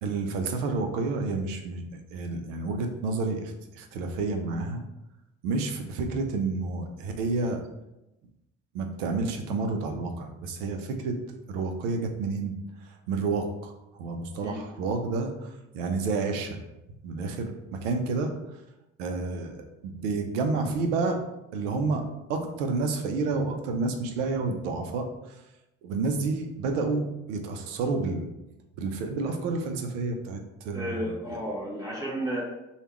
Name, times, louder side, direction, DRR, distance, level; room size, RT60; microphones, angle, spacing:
voice 1, 0.0-1.8 2.1-4.8 5.4-7.6 8.7-11.2 11.5-12.5 13.1-13.7 14.0-16.6 17.0-18.3 19.0-19.6 20.0-21.2 21.5-22.0 22.3-25.4 25.8-28.3 28.8-31.4, right 3 dB, 70° right, 4 dB, 0.7 m, -30 dB
voice 2, 30.7-32.4, right 1 dB, 10° right, -6 dB, 1.1 m, -32 dB
3.4 x 2.4 x 4.3 m, 0.94 s
figure-of-eight pair, 50°, 38 cm